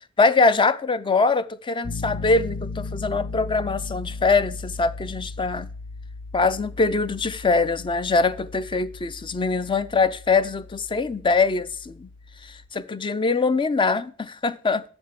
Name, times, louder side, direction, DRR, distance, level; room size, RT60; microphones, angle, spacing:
voice 1, 0.2-5.7 6.3-12.1 12.7-14.8, left 4 dB, 25° left, 0.5 m, -23 dB
Piano, 1.8-12.7, left 3 dB, 55° left, 0.8 m, -37 dB
7.2 x 5.4 x 7.3 m
head